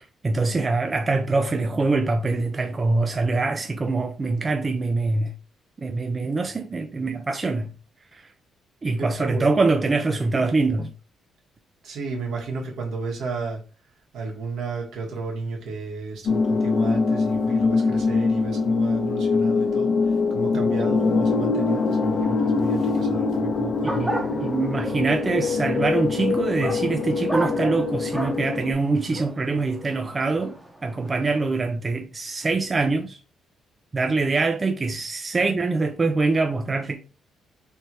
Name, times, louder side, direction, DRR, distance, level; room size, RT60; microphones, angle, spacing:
voice 1, 0.0-5.3 5.8-7.7 8.1-8.2 8.8-10.9 20.7-20.8 23.8-24.1 24.4-30.5 30.8-33.2 33.9-37.0, right 3 dB, 30° right, 0.5 m, -24 dB
voice 2, 9.0-9.5 11.8-13.6 14.1-24.4, right 4 dB, 75° right, 1.5 m, -33 dB
sound 1, 16.3-28.7, left 4 dB, 60° left, 0.8 m, -23 dB
sound 2, 23.8-31.4, right 1 dB, 10° right, 0.9 m, -34 dB
3.3 x 3.0 x 4.1 m
cardioid pair, 90°, 0 cm